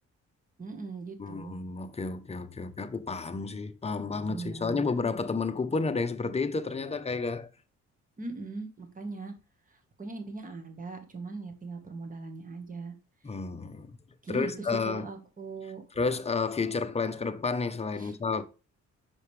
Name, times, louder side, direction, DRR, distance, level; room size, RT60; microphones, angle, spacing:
voice 1, 0.6-1.6 4.3-4.9 8.2-9.3 9.7-12.9 14.2-15.8 18.0-18.2, right 3 dB, 25° right, 1.5 m, -40 dB
voice 2, 1.2-7.5 13.2-13.9 14.3-15.1 16.0-18.4, left 4 dB, 20° left, 0.8 m, -31 dB
5.9 x 5.2 x 3.3 m
cardioid pair, 90°, 30 cm